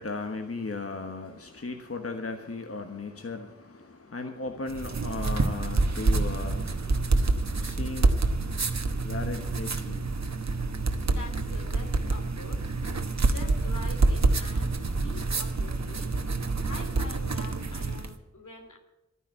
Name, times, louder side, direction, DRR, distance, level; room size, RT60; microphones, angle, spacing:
voice 1, 0.0-8.4 8.9-10.1, left 3 dB, 50° left, 5 dB, 1.3 m, -37 dB
sound 1, 4.7-18.1, right 3 dB, 65° right, 1.2 m, -27 dB
voice 2, 11.0-12.7 13.2-16.1 16.7-18.8, left 2 dB, 80° left, 4 dB, 2.9 m, -45 dB
12.5 x 10.0 x 9.0 m, 0.97 s
wide cardioid pair, 75°, 30 cm